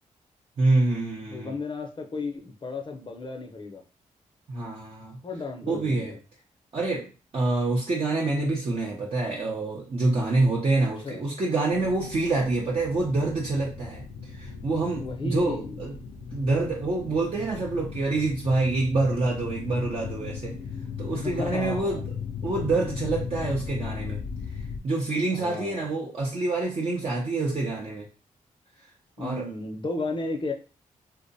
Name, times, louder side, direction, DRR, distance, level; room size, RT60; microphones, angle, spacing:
voice 1, 0.6-1.6 4.5-5.2 5.6-6.2 6.7-7.1 7.3-15.9 16.3-20.5 21.0-22.0 22.4-24.2 24.5-28.1 29.2-29.5, right 2 dB, 45° right, -3 dB, 0.6 m, -26 dB
voice 2, 1.3-3.8 5.2-6.2 11.0-11.2 14.9-15.8 21.1-22.0 25.2-25.9 29.2-30.5, left 3 dB, 35° left, 3 dB, 0.6 m, -34 dB
sound 1, 11.7-24.8, left 6 dB, 90° left, 0.4 m, -37 dB
2.5 x 2.0 x 2.6 m, 0.34 s
cardioid pair, 55°, 14 cm